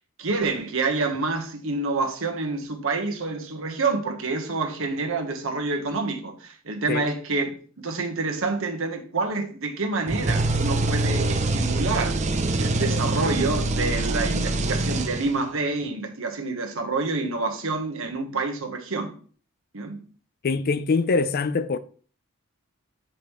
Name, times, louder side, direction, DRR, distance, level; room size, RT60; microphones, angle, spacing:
voice 1, 0.2-12.2 12.6-19.2 19.7-20.0, right 3 dB, 65° right, 1.2 m, -28 dB
sound 1, 10.1-15.6, right 2 dB, 35° right, 0.6 m, -24 dB
voice 2, 20.4-21.8, left 4 dB, 45° left, 0.4 m, -23 dB
8.2 x 5.1 x 3.1 m
head